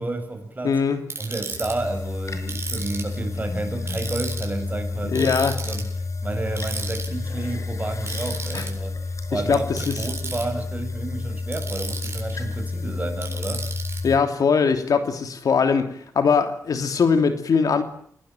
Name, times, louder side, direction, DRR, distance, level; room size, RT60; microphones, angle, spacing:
voice 1, 0.0-0.8 1.2-5.3 5.6-5.9 6.2-8.9 9.3-13.8, right 2 dB, 25° right, 5 dB, 7.1 m, -31 dB
voice 2, 0.6-1.0 5.1-5.5 8.5-8.7 9.3-10.0 14.0-17.8, left 5 dB, 75° left, 8 dB, 3.2 m, -21 dB
Ratchet pawl, 1.1-1.7 2.5-3.2 3.9-4.5 5.2-5.9 6.6-7.1 8.1-8.7 9.7-10.4 11.5-12.3 13.2-14.0, right 4 dB, 45° right, 7.6 m, -33 dB
sound 1, 1.5-14.2, left 3 dB, 55° left, 5.8 m, -30 dB
28.0 x 19.0 x 9.0 m, 0.62 s
cardioid pair, 75°, 6 cm